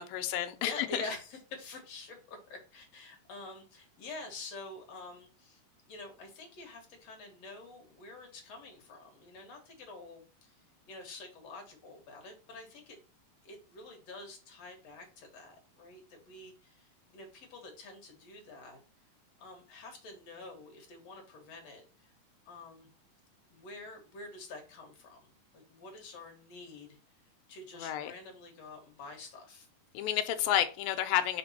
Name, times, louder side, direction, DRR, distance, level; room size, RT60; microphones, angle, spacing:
voice 1, 0.0-1.0 27.7-28.1 29.9-31.4, left 11 dB, 85° left, 9 dB, 2.4 m, -31 dB
voice 2, 0.6-5.6 5.9-10.5 10.9-13.0 13.4-16.9 17.1-18.8 19.4-22.1 22.5-22.9 23.5-25.2 25.5-27.0 27.5-29.7 30.4-30.5, left 2 dB, 55° left, 3 dB, 2.2 m, -47 dB
5.2 x 5.0 x 4.2 m, 0.37 s
omnidirectional pair, 4.1 m